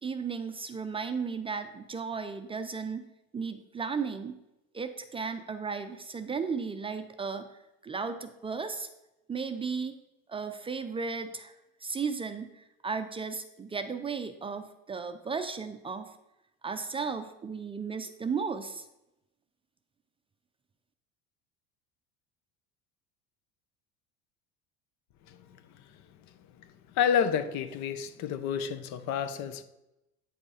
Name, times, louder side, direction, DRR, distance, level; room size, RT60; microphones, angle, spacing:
voice 1, 0.0-3.1 3.3-4.4 4.7-7.5 7.8-8.9 9.3-9.9 10.3-11.5 11.8-16.1 16.6-18.9, right 5 dB, 15° right, 0.5 m, -35 dB
voice 2, 25.3-25.6 26.9-29.6, left 8 dB, 60° left, 0.9 m, -29 dB
9.2 x 5.2 x 4.9 m
supercardioid pair, 120°, 32 cm